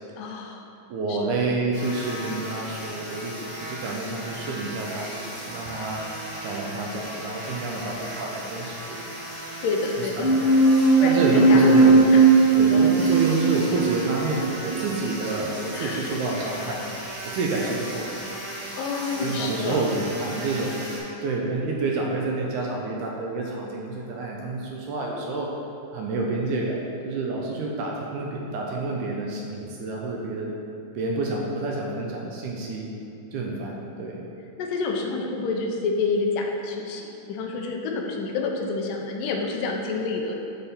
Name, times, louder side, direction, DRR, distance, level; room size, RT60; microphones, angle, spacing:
voice 1, 0.2-0.6 1.1-1.2 9.6-10.4 11.0-11.7 12.1-12.3 12.7-12.8 15.7-16.2 18.8-19.8 34.6-40.4, left 4 dB, 85° left, 1 dB, 2.3 m, -28 dB
voice 2, 0.9-6.0 6.4-9.0 10.0-10.4 11.0-12.0 12.6-16.8 17.2-18.1 19.2-20.8 21.2-25.5 25.9-26.8 27.0-30.5 31.0-32.9 33.3-34.2, right 3 dB, 75° right, -1 dB, 2.0 m, -28 dB
sound 1, 1.7-21.0, equal, 40° right, 0.4 m, -36 dB
sound 2, 10.2-15.1, right 3 dB, 45° left, 0.6 m, -18 dB
10.5 x 3.7 x 4.2 m, 2.7 s
omnidirectional pair, 3.8 m